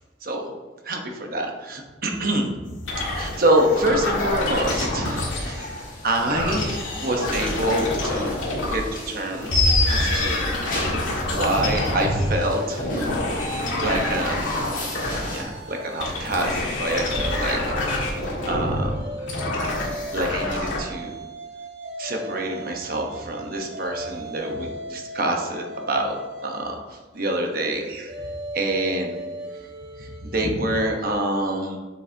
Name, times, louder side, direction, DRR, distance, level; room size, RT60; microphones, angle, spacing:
voice 1, 0.2-0.5 0.8-2.8 3.1-8.3 8.7-10.4 10.9-14.5 15.1-18.0 18.4-19.2 20.1-21.1 22.0-28.1 28.5-29.2 30.0-31.8, right 1 dB, 45° right, 2 dB, 1.0 m, -26 dB
sound 1, 2.9-5.8 6.1-9.0 9.3-15.6 16.0-20.8, left 2 dB, 80° left, 1.9 m, -26 dB
sound 2, 5.6-15.4, left 1 dB, 45° left, 2.0 m, -38 dB
sound 3, 12.5-16.5 16.9-30.5, right 1 dB, 70° right, 1.3 m, -37 dB
7.7 x 6.4 x 2.8 m, 1.2 s
head